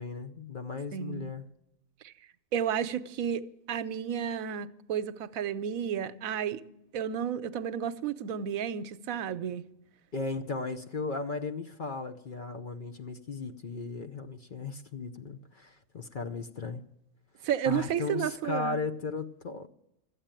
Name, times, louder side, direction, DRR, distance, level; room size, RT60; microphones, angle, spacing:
voice 1, 0.0-1.4 10.1-16.8 17.7-19.7, left 4 dB, 45° left, 0.7 m, -36 dB
voice 2, 0.9-1.3 2.0-2.1 2.5-3.4 3.7-6.6 6.9-9.6 17.4-18.8, right 9 dB, 80° right, 1.1 m, -32 dB
13.0 x 8.4 x 8.9 m
omnidirectional pair, 1.4 m